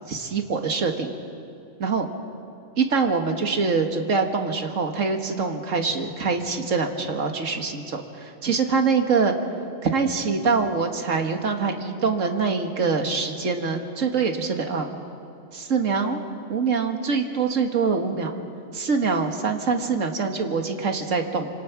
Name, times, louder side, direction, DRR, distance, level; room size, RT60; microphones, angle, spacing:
voice 1, 0.1-1.1 1.8-2.1 2.8-9.3 9.8-14.9 15.5-16.2 16.5-18.3 18.7-21.5, right 5 dB, 70° right, 4 dB, 2.0 m, -24 dB
26.0 x 26.0 x 5.9 m, 2.5 s
omnidirectional pair, 1.4 m